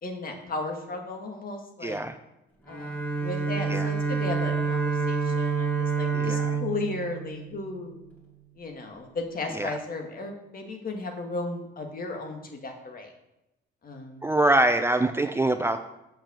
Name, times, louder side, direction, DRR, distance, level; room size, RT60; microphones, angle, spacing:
voice 1, 0.0-2.0 2.7-8.0 8.6-13.1 13.8-14.3, left 2 dB, 45° left, 3 dB, 2.0 m, -35 dB
voice 2, 1.8-2.2 3.7-3.9 6.1-6.5 9.5-9.8 14.2-15.8, right 1 dB, 10° right, 8 dB, 0.5 m, -24 dB
Bowed string instrument, 2.7-8.1, right 5 dB, 10° left, 2.6 m, -28 dB
7.3 x 5.8 x 6.9 m, 0.92 s
cardioid pair, 90°, 20 cm